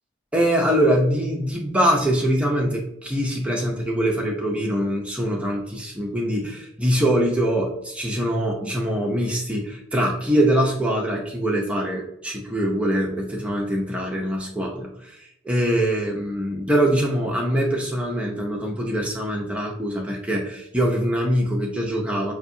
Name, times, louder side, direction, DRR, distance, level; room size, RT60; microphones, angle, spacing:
voice 1, 0.3-22.3, equal, 5° right, -2 dB, 0.5 m, -23 dB
5.3 x 2.6 x 2.6 m, 0.82 s
head